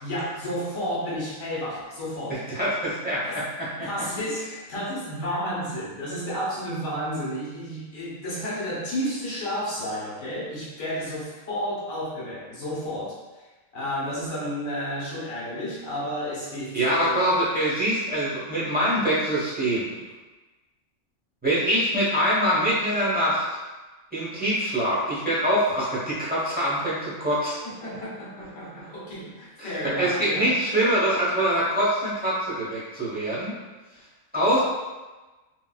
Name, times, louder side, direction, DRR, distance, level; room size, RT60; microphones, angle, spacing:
voice 1, 0.0-2.4 3.2-3.4 3.8-13.5 13.7-17.2 27.6-30.5, equal, 75° left, -7 dB, 1.4 m, -32 dB
voice 2, 2.3-3.9 16.7-19.9 21.4-23.4 24.1-27.6 29.6-33.5 34.3-34.6, equal, 10° right, -10 dB, 0.7 m, -24 dB
4.0 x 2.2 x 2.3 m, 1.2 s
omnidirectional pair, 1.4 m